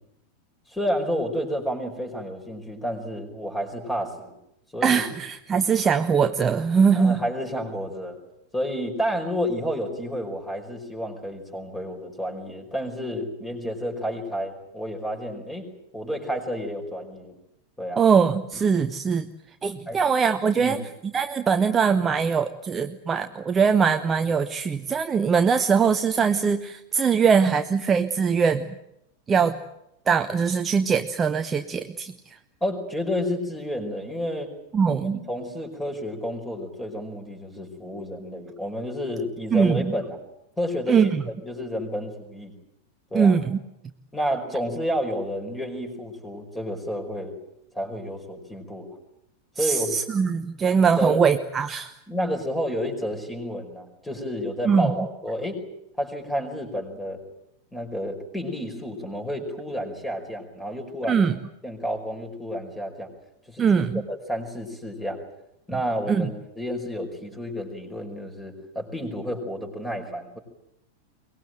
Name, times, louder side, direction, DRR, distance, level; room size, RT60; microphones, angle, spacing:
voice 1, 0.7-4.3 4.7-5.0 6.9-8.2 8.5-17.3 17.8-18.0 19.9-20.0 20.6-20.8 32.6-34.5 34.9-35.0 35.3-40.2 40.6-42.5 43.1-43.3 44.1-47.3 47.7-48.9 49.6-50.0 50.9-51.2 52.1-55.6 56.0-57.2 57.7-61.2 61.6-63.1 63.5-65.2 65.7-70.4, equal, 10° left, 4 dB, 5.2 m, -30 dB
voice 2, 4.8-7.2 18.0-19.3 19.6-20.8 21.1-28.7 29.3-29.6 30.1-32.4 34.7-35.2 39.5-39.9 40.9-41.2 43.1-43.6 49.6-51.9 54.6-54.9 61.1-61.4 63.6-64.0 66.1-66.3, right 6 dB, 20° right, 8 dB, 0.9 m, -22 dB
23.0 x 20.5 x 9.2 m, 0.81 s
figure-of-eight pair, 90°, 0 cm